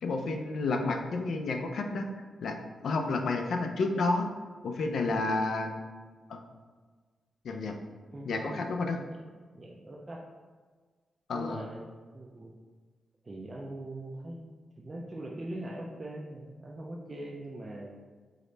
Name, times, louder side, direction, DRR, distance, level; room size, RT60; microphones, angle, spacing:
voice 1, 0.0-2.1 2.4-2.5 2.8-4.3 4.6-5.8 6.3-6.4 7.4-7.8 8.3-9.0 11.3-11.6, left 3 dB, 70° left, 4 dB, 0.4 m, -30 dB
voice 2, 8.1-8.5 9.1-9.3 9.5-10.3 11.3-12.6 13.2-14.5 14.8-18.0, right 1 dB, 25° right, -1 dB, 0.4 m, -41 dB
4.9 x 2.1 x 3.9 m, 1.5 s
wide cardioid pair, 120°, 0 cm